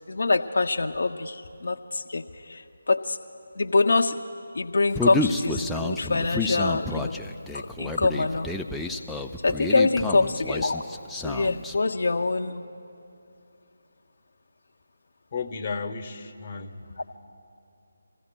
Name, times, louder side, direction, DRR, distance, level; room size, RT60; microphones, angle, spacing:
voice 1, 0.1-3.2 3.6-4.1 4.5-7.2 7.5-8.5 9.4-12.6, left 3 dB, 65° left, 3 dB, 0.4 m, -25 dB
Human voice, 4.9-11.8, left 2 dB, 5° left, 0.3 m, -30 dB
voice 2, 15.3-16.7, left 4 dB, 35° left, 5 dB, 0.7 m, -34 dB
28.5 x 15.0 x 2.2 m, 2.6 s
figure-of-eight pair, 160°, 0 cm